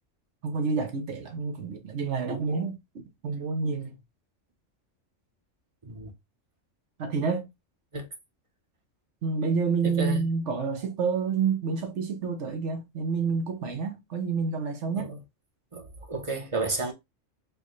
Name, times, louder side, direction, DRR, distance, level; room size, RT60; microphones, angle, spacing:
voice 1, 0.4-4.0 7.0-7.5 9.2-15.1, right 5 dB, 65° right, 1.1 m, -29 dB
voice 2, 9.8-10.3 15.0-15.2 15.7-16.9, right 2 dB, 30° right, 0.7 m, -31 dB
4.7 x 2.2 x 3.0 m
omnidirectional pair, 1.3 m